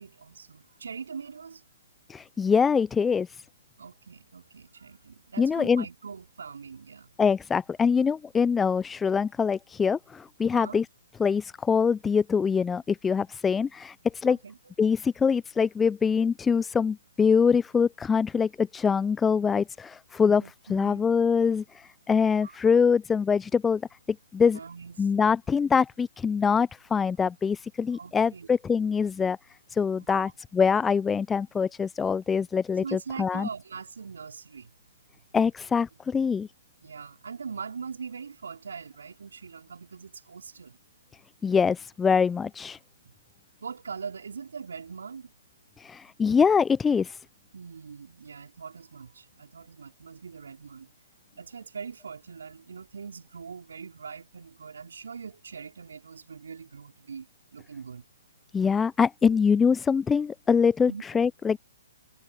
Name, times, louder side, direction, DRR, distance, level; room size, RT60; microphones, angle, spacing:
voice 1, 0.0-1.6 3.8-7.1 10.5-10.8 14.2-14.7 20.4-21.0 22.3-22.6 24.5-25.1 27.9-28.5 29.9-30.2 32.8-34.7 36.8-40.8 43.6-45.3 47.5-50.9 51.3-58.0 60.9-61.0, right 6 dB, 70° right, 4.5 m, -42 dB
voice 2, 2.1-3.3 5.4-5.8 7.2-10.8 11.2-14.4 14.8-20.4 20.7-23.8 24.3-24.6 25.0-29.4 29.7-33.5 35.3-36.5 41.4-42.8 45.8-47.2 58.5-61.6, left 6 dB, 10° left, 0.6 m, -24 dB
figure-of-eight pair, 125°, 0 cm